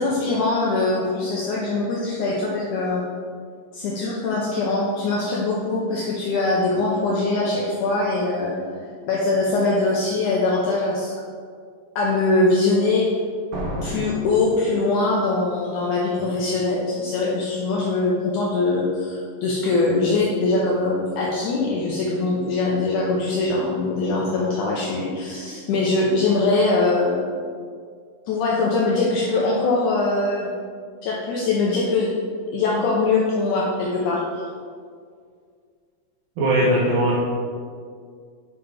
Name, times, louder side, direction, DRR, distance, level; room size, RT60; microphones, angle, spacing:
voice 1, 0.0-3.0 3.7-8.6 9.1-11.1 12.0-13.1 13.8-27.2 28.3-30.5 31.0-32.1 32.5-34.4, left 3 dB, 75° left, -4 dB, 2.1 m, -22 dB
sound 1, 13.5-15.3, equal, 65° right, 2.0 m, -32 dB
voice 2, 36.4-37.2, right 1 dB, 85° right, -7 dB, 2.9 m, -19 dB
9.6 x 5.5 x 3.4 m, 2.1 s
omnidirectional pair, 3.9 m